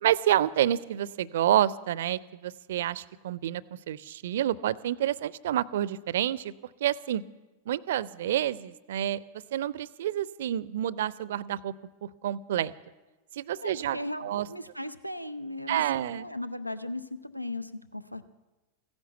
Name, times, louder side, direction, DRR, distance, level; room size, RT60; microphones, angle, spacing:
voice 1, 0.0-3.6 3.9-6.5 6.8-7.2 7.7-9.2 9.5-11.7 12.0-12.7 13.3-14.5 15.7-16.3, right 11 dB, 60° right, 21 dB, 0.5 m, -28 dB
voice 2, 13.6-18.3, left 1 dB, 90° left, 14 dB, 0.6 m, -37 dB
15.5 x 10.5 x 8.1 m, 1.2 s
figure-of-eight pair, 90°, 0 cm